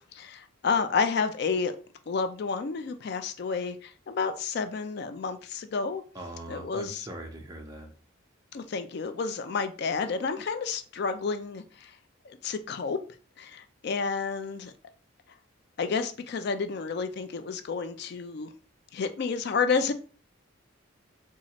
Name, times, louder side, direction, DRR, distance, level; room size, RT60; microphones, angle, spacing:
voice 1, 0.1-1.7 2.1-6.0 6.5-7.1 8.5-11.9 12.3-13.0 13.4-14.7 15.8-18.5 18.9-19.9, left 5 dB, 50° left, 9 dB, 0.4 m, -30 dB
voice 2, 6.1-7.9, right 1 dB, 15° right, 1 dB, 0.6 m, -41 dB
4.1 x 2.4 x 2.9 m, 0.38 s
head